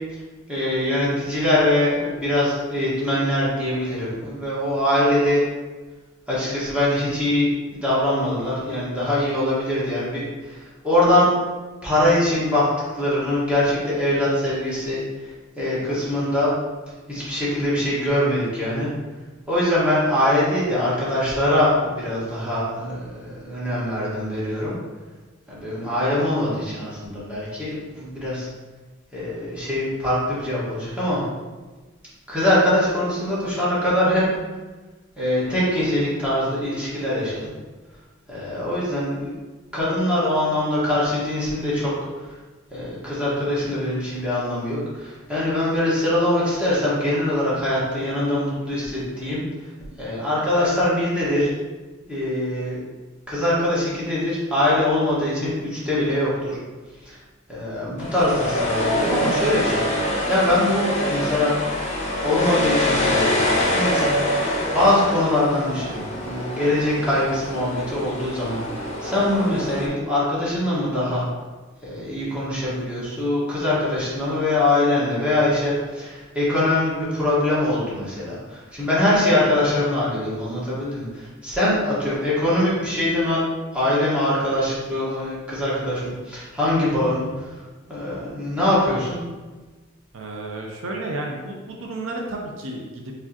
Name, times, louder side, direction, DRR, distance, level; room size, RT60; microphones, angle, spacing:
voice 1, 0.5-5.4 6.3-11.3 11.8-12.7 12.9-16.5 17.1-18.9 19.5-24.7 25.5-28.5 29.1-31.2 32.3-34.2 35.2-37.5 38.3-39.4 39.7-42.3 42.7-49.4 50.0-51.5 52.1-52.8 53.3-56.6 57.0-57.2 57.5-61.5 62.2-64.1 64.7-71.3 71.8-83.4 83.7-87.2 87.9-89.2, left 1 dB, 5° right, -9 dB, 1.4 m, -23 dB
sound 1, 58.0-69.9, left 1 dB, 35° left, 0.9 m, -25 dB
voice 2, 87.0-87.3 90.1-93.1, right 2 dB, 75° right, 0 dB, 0.6 m, -32 dB
4.7 x 3.4 x 2.8 m, 1.3 s
head